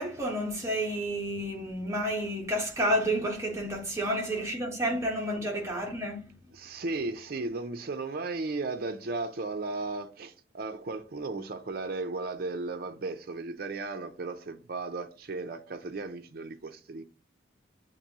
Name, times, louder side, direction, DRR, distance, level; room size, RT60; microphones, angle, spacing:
voice 1, 0.0-6.3, equal, 15° right, 1.1 m, -30 dB
voice 2, 6.5-17.0, right 3 dB, 55° right, 0.5 m, -35 dB
6.7 x 2.6 x 2.8 m
head